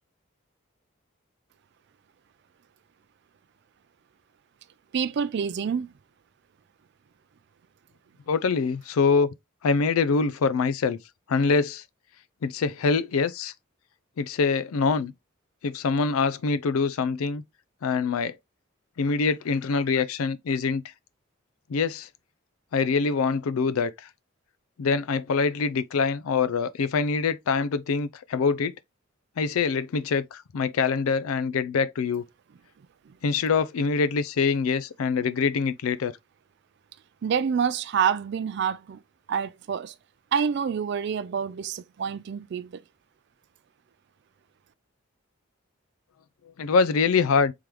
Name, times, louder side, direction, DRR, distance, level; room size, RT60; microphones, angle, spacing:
voice 1, 4.9-5.9 33.1-33.2 37.2-39.0 39.3-39.9 40.3-42.8, right 7 dB, 55° right, 0.3 m, -27 dB
voice 2, 8.3-9.4 9.6-11.0 11.3-11.8 12.4-13.5 14.2-15.1 15.6-17.4 17.8-18.4 19.0-20.8 21.7-22.1 22.7-23.9 24.8-28.7 29.4-32.2 33.2-36.1 46.6-47.5, left 5 dB, 85° left, 0.4 m, -24 dB
3.7 x 3.0 x 3.2 m
head